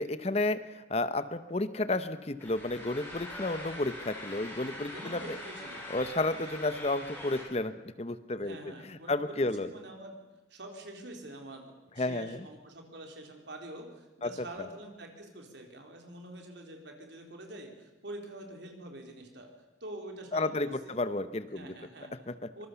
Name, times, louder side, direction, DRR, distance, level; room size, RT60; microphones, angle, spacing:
voice 1, 0.0-5.4 5.9-9.7 12.0-12.5 14.2-14.5 20.3-21.7 22.3-22.5, left 2 dB, 35° left, 13 dB, 0.8 m, -32 dB
sound 1, 2.4-7.4, left 1 dB, 10° left, 6.5 m, -43 dB
voice 2, 4.9-5.8 8.4-10.2 10.5-19.5 19.8-21.0 21.5-22.1 22.5-22.7, right 1 dB, 65° right, 3 dB, 4.3 m, -46 dB
24.5 x 21.0 x 7.0 m, 1.1 s
head